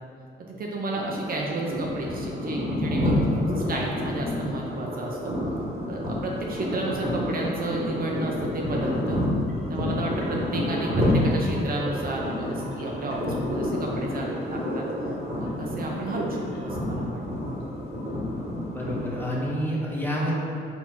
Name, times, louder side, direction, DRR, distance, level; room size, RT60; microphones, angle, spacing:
voice 1, 0.5-5.3 5.9-9.2 9.7-17.2, right 2 dB, 45° right, -1 dB, 0.6 m, -32 dB
sound 1, 0.9-19.5, left 1 dB, 30° right, 1.2 m, -29 dB
sound 2, 7.1-7.9 8.5-8.9 9.4-17.0 17.2-17.6 18.0-18.2, left 2 dB, 75° left, 1.1 m, -43 dB
voice 2, 18.7-20.3, equal, 10° left, -5 dB, 1.0 m, -28 dB
4.3 x 2.8 x 4.3 m, 2.5 s
cardioid pair, 90°, 20 cm